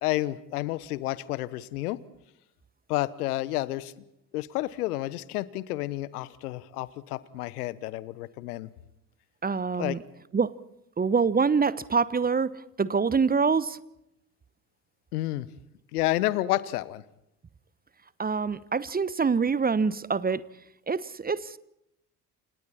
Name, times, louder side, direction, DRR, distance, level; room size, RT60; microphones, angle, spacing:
voice 1, 0.0-2.0 2.9-3.9 4.3-8.7 9.8-10.0 15.1-15.5 15.9-17.0, left 16 dB, 70° left, 1.2 m, -30 dB
voice 2, 9.4-10.0 10.3-10.6 11.0-13.8 18.2-20.4 20.9-21.6, right 5 dB, 20° right, 1.0 m, -25 dB
29.5 x 27.5 x 4.3 m
figure-of-eight pair, 55°, 48 cm